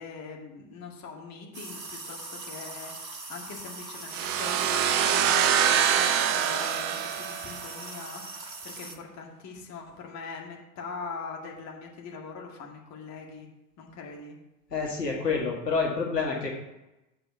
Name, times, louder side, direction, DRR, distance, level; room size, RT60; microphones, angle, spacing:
voice 1, 0.0-13.5 13.8-14.4, left 4 dB, 35° left, 0 dB, 2.0 m, -41 dB
sound 1, 1.5-9.0, right 3 dB, 90° right, 1.1 m, -41 dB
sound 2, 4.1-7.8, right 9 dB, 30° right, 0.6 m, -25 dB
voice 2, 14.7-16.5, left 4 dB, 80° left, -2 dB, 2.0 m, -28 dB
7.7 x 4.8 x 6.3 m, 0.97 s
figure-of-eight pair, 85°, 49 cm